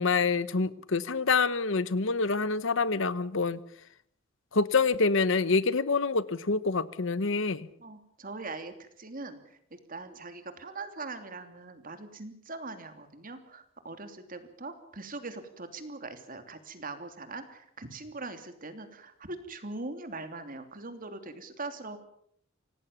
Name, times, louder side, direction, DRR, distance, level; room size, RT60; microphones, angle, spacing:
voice 1, 0.0-3.6 4.5-7.7, left 4 dB, 65° left, 16 dB, 1.0 m, -26 dB
voice 2, 7.8-22.0, right 3 dB, 45° right, 8 dB, 3.0 m, -41 dB
26.5 x 18.0 x 7.2 m, 0.67 s
head